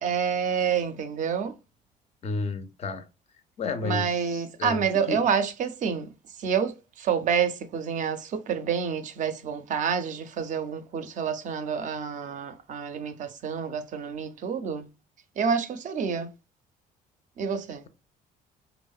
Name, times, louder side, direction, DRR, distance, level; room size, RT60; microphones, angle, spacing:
voice 1, 0.0-1.6 3.8-6.1 6.4-14.9 15.4-16.3 17.4-17.8, right 7 dB, 50° right, 0.4 m, -28 dB
voice 2, 2.2-3.0 3.6-5.2, left 3 dB, 40° left, 0.4 m, -32 dB
2.7 x 2.0 x 2.3 m
cardioid pair, 110°, 17 cm